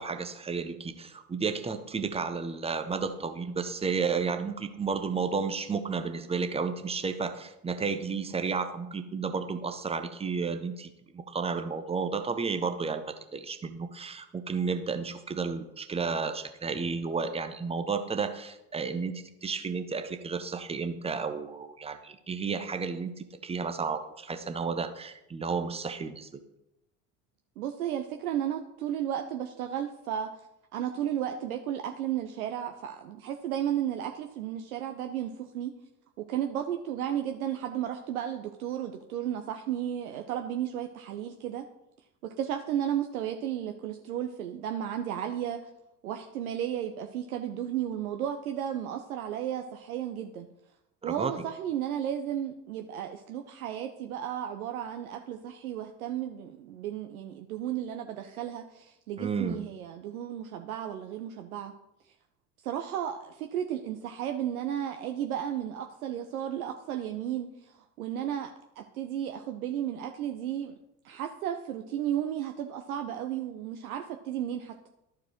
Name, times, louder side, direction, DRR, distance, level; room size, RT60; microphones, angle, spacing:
voice 1, 0.0-26.3 51.0-51.3 59.2-59.6, right 5 dB, 15° right, 9 dB, 0.7 m, -32 dB
voice 2, 27.6-30.3 30.7-35.7 36.2-41.6 42.2-45.7 46.0-50.5 51.0-61.7 62.6-68.5 68.8-70.7 71.0-74.7, right 10 dB, 70° right, 5 dB, 0.7 m, -33 dB
13.0 x 4.7 x 3.1 m, 0.87 s
figure-of-eight pair, 60°, 45 cm